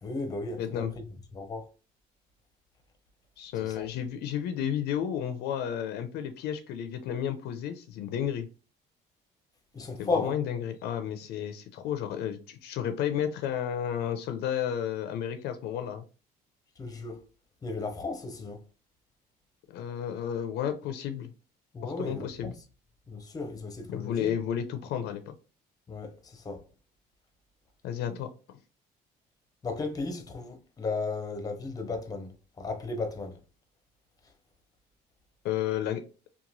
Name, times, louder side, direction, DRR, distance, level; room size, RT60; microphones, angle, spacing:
voice 1, 0.0-0.9 1.3-1.7 3.6-3.9 9.7-10.4 16.8-17.2 17.6-18.6 21.7-22.5 23.1-24.3 25.9-26.6 29.6-33.4, left 3 dB, 20° left, 0.5 m, -35 dB
voice 2, 0.6-0.9 3.4-8.5 10.0-16.0 19.7-21.3 21.8-22.5 23.9-25.3 27.8-28.6 35.4-36.0, left 9 dB, 75° left, 0.4 m, -32 dB
2.9 x 2.2 x 2.5 m
cardioid pair, 110°, 17 cm